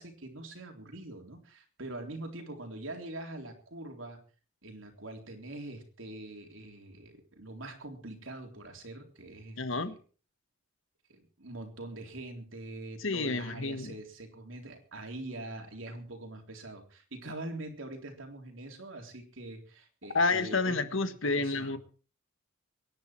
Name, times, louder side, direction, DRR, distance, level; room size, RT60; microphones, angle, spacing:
voice 1, 0.0-4.2 4.6-10.0 11.1-20.9 21.4-21.8, right 2 dB, 65° right, 3.6 m, -44 dB
voice 2, 9.6-9.9 13.0-14.0 20.1-21.8, left 3 dB, 65° left, 1.4 m, -29 dB
24.0 x 10.5 x 4.6 m
head